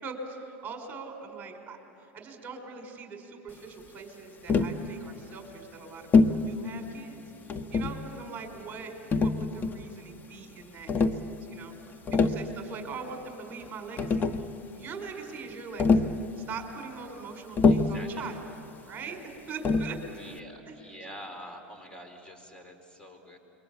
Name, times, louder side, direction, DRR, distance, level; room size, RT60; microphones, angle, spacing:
voice 1, 0.0-7.2 7.5-11.7 12.1-14.3 14.7-18.5 18.8-19.2 19.5-20.0 20.7-20.8, right 5 dB, 25° right, 3 dB, 5.0 m, -42 dB
Tap, 4.5-4.8 6.1-6.4 7.5-8.1 9.1-9.9 10.9-11.2 11.9-12.5 13.6-13.7 14.0-14.5 15.8-16.2 17.6-18.0 19.6-20.0, left 4 dB, 30° left, 1.3 m, -24 dB
voice 2, 17.6-18.3 20.2-23.4, equal, 15° left, 5 dB, 4.5 m, -46 dB
28.0 x 23.0 x 8.7 m, 2.9 s
hypercardioid pair, 95°, 6 cm